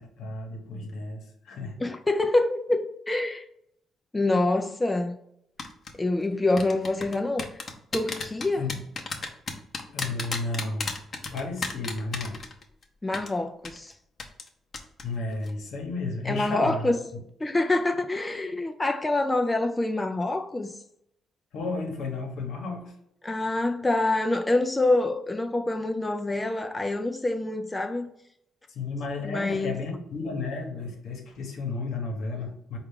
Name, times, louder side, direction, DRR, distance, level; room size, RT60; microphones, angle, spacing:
voice 1, 0.0-1.8 8.6-8.8 9.9-10.9 11.3-12.4 15.0-16.9 21.5-22.9 28.7-32.8, left 3 dB, 70° left, 1.0 m, -33 dB
voice 2, 1.8-3.4 4.1-5.2 6.0-7.6 7.9-8.7 13.0-13.9 16.2-17.0 17.4-20.8 23.2-28.1 29.2-29.8, left 2 dB, 15° left, 0.4 m, -26 dB
sound 1, 5.6-5.9 6.6-12.8 13.1-13.3 13.7-13.8 14.2-14.5 14.7-15.0 15.3-15.5, left 4 dB, 45° left, 0.7 m, -32 dB
4.4 x 2.4 x 3.5 m
cardioid pair, 90°, 0 cm